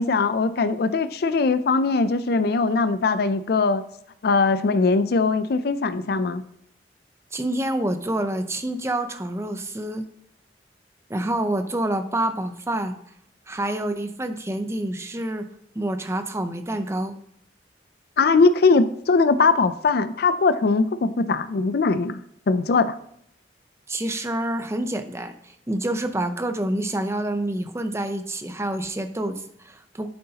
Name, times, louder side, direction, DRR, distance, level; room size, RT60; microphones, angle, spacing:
voice 1, 0.0-3.8 4.2-6.4 18.2-22.2 22.5-22.9, left 4 dB, 60° left, 12 dB, 0.4 m, -20 dB
voice 2, 7.3-10.1 11.1-13.0 13.5-15.5 15.7-17.2 23.9-30.1, right 1 dB, 15° right, 8 dB, 0.6 m, -27 dB
9.6 x 7.7 x 2.8 m, 0.72 s
head